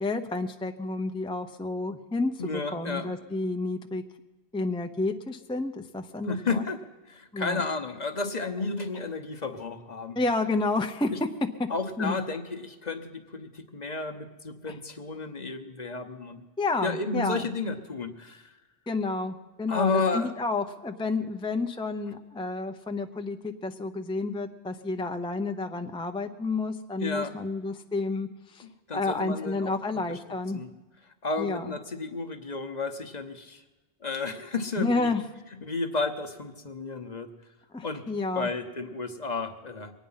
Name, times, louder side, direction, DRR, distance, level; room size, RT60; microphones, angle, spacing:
voice 1, 0.0-4.0 4.5-6.6 7.3-7.6 10.2-11.1 11.6-11.7 12.0-12.2 14.6-14.7 16.6-17.5 18.9-28.6 28.9-30.6 31.4-31.7 34.8-35.2 37.7-38.5, left 3 dB, 5° left, 5 dB, 0.6 m, -30 dB
voice 2, 2.4-3.1 6.2-10.2 11.1-11.2 11.7-16.5 16.8-18.6 19.7-20.3 27.0-27.3 28.6-29.7 30.1-30.2 30.5-30.7 31.0-33.6 34.0-35.1 35.6-37.3 37.8-38.0 38.3-39.9, left 3 dB, 45° left, 7 dB, 1.1 m, -32 dB
23.5 x 9.3 x 5.6 m, 1.2 s
omnidirectional pair, 1.1 m